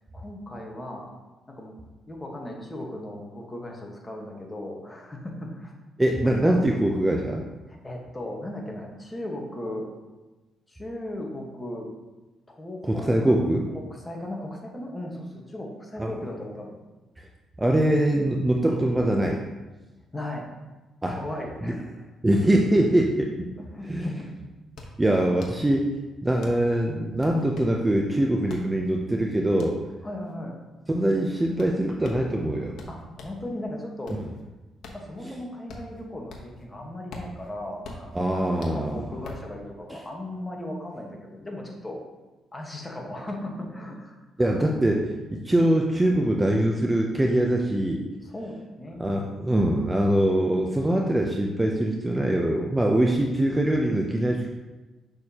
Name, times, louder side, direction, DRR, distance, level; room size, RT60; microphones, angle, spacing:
voice 1, 0.1-1.1 1.5-1.7 2.1-5.7 6.2-7.0 7.7-9.9 10.7-11.9 12.5-13.4 13.7-16.8 20.1-20.6 21.2-22.0 23.6-24.3 30.0-30.6 32.9-34.2 34.9-42.0 42.5-44.8 48.2-49.1, left 1 dB, 20° left, 0 dB, 1.4 m, -37 dB
voice 2, 6.0-7.4 12.8-13.6 16.0-16.1 17.6-19.4 21.0-21.2 21.6-21.7 22.2-23.3 23.9-24.1 25.0-25.9 26.2-29.8 30.9-32.7 35.2-35.3 38.1-39.0 44.4-48.0 49.0-54.5, right 1 dB, 15° right, 1 dB, 0.6 m, -23 dB
sound 1, 24.7-33.5 33.8-36.7 36.9-39.5, left 2 dB, 70° left, 1.1 m, -44 dB
6.6 x 6.2 x 2.9 m, 1.1 s
cardioid pair, 90°, 0 cm